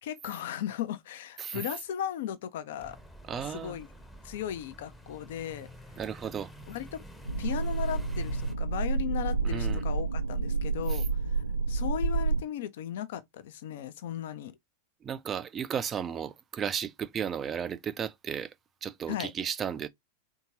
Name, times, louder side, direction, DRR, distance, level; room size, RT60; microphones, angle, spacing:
voice 1, 0.0-3.0 3.4-3.9 4.2-5.7 6.7-7.0 7.4-14.5 19.1-19.3, left 10 dB, 55° left, 0.5 m, -36 dB
napoli street, 2.8-8.5, equal, 5° left, 0.8 m, -48 dB
voice 2, 3.3-3.8 6.0-6.5 9.4-9.8 10.9-11.0 15.0-18.5 18.8-19.9, right 8 dB, 25° right, 0.4 m, -34 dB
sound 1, 7.3-12.4, right 4 dB, 85° right, 0.5 m, -29 dB
3.6 x 2.8 x 2.7 m
figure-of-eight pair, 90°, 0 cm